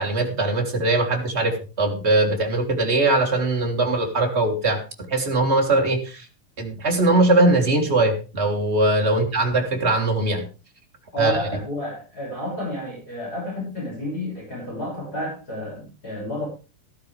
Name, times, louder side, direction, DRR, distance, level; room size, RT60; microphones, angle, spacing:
voice 1, 0.0-4.8 5.1-6.3 6.6-10.5 11.2-11.4, right 2 dB, 20° right, 2 dB, 2.6 m, -21 dB
voice 2, 11.1-16.5, left 1 dB, 25° left, -4 dB, 6.8 m, -31 dB
13.5 x 13.5 x 3.4 m, 0.32 s
omnidirectional pair, 3.6 m